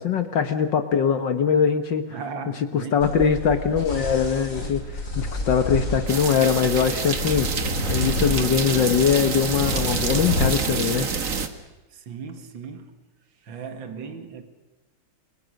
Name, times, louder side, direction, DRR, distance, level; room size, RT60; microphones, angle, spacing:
voice 1, 0.0-2.1 2.7-11.1, left 7 dB, 60° left, 1.8 m, -22 dB
voice 2, 2.1-3.1 11.9-12.9 13.4-14.4, right 5 dB, 60° right, 2.7 m, -36 dB
sound 1, 3.0-10.5, left 2 dB, 35° left, 4.1 m, -30 dB
sound 2, 6.1-11.5, right 5 dB, 40° right, 1.7 m, -27 dB
29.0 x 22.5 x 6.5 m
omnidirectional pair, 2.4 m